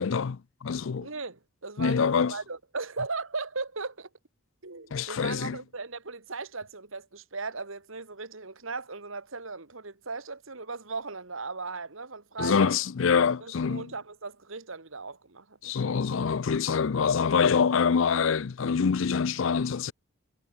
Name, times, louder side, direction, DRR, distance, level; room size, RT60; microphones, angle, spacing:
voice 1, 0.0-1.1 1.8-2.3 4.9-5.6 12.4-13.9 15.6-19.9, left 6 dB, 65° left, 0.5 m, -25 dB
voice 2, 1.0-4.1 4.6-12.7 13.4-15.7, right 4 dB, 70° right, 2.1 m, -37 dB
head